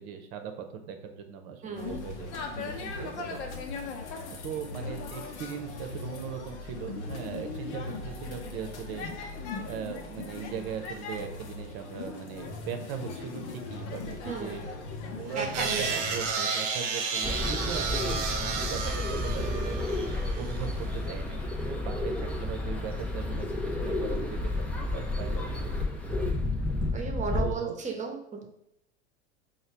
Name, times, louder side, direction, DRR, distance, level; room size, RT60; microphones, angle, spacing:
voice 1, 0.0-3.4 4.3-14.6 15.1-20.0 20.4-26.3 27.3-27.8, right 7 dB, 60° right, 5 dB, 0.7 m, -39 dB
voice 2, 1.6-2.0 3.0-3.1 14.2-14.5 15.3-15.9 26.9-28.5, right 5 dB, 20° right, 2 dB, 0.8 m, -34 dB
sound 1, 1.8-16.3, left 4 dB, 70° left, 0.8 m, -39 dB
sound 2, 15.4-20.7, right 5 dB, 85° right, 0.7 m, -32 dB
sound 3, 17.2-27.5, left 2 dB, 5° left, 0.3 m, -31 dB
4.4 x 2.3 x 3.3 m, 0.78 s
hypercardioid pair, 95°, 35 cm